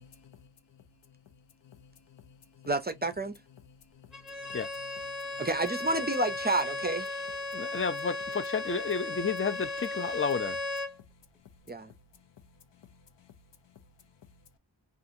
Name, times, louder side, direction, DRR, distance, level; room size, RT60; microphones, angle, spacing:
voice 1, 0.0-2.7 3.2-5.5 5.8-5.9 6.3-6.4 6.7-6.8 7.4-7.8 10.9-14.6, left 7 dB, 75° left, 0.7 m, -57 dB
voice 2, 2.7-3.4 5.4-7.1 11.7-11.9, right 2 dB, 25° right, 0.5 m, -29 dB
Bowed string instrument, 4.1-11.0, left 2 dB, ahead, 0.9 m, -36 dB
voice 3, 7.5-10.6, left 5 dB, 30° left, 0.5 m, -31 dB
2.7 x 2.5 x 2.6 m
wide cardioid pair, 85°, 43 cm